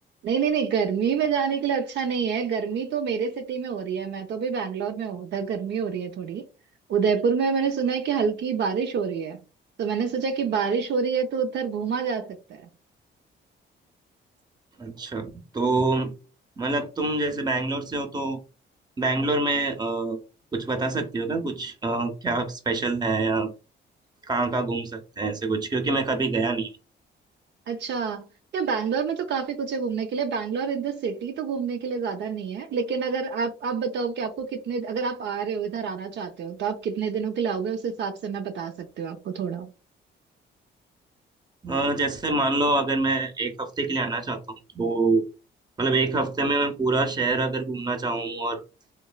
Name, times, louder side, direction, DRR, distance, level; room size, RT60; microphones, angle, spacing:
voice 1, 0.2-6.5 6.9-9.4 9.8-12.6 27.7-28.3 28.5-39.7, right 6 dB, 60° right, 0.5 m, -27 dB
voice 2, 14.8-16.1 16.6-18.4 19.0-20.2 20.5-23.5 24.3-26.7 41.6-44.4 44.7-45.2 45.8-48.6, right 3 dB, 20° right, 0.6 m, -26 dB
3.1 x 2.3 x 2.2 m
cardioid pair, 90°, 20 cm